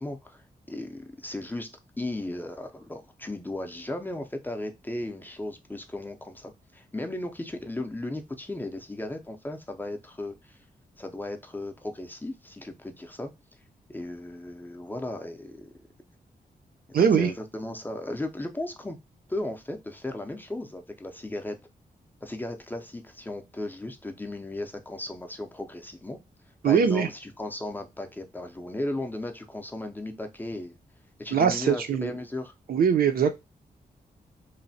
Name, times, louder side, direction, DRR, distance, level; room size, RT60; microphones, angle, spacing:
voice 1, 0.0-1.7 2.0-10.6 11.0-13.3 13.9-15.7 17.0-19.0 19.3-21.6 22.2-26.2 26.6-30.7 31.2-32.5, left 1 dB, 10° left, 0.4 m, -36 dB
voice 2, 16.9-17.3 26.6-27.1 31.3-32.1 32.7-33.3, right 7 dB, 75° right, 0.5 m, -21 dB
3.1 x 2.1 x 2.6 m
wide cardioid pair, 130°, 15 cm